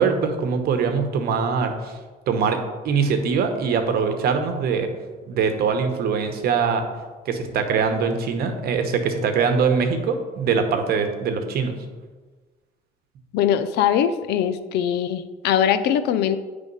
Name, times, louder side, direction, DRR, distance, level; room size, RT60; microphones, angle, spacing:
voice 1, 0.0-2.0 2.3-4.9 5.3-6.9 7.2-11.8, right 5 dB, 65° right, 7 dB, 1.0 m, -22 dB
voice 2, 13.3-16.4, left 9 dB, 80° left, 11 dB, 0.5 m, -21 dB
9.0 x 3.5 x 5.4 m, 1.3 s
cardioid pair, 110°, 17 cm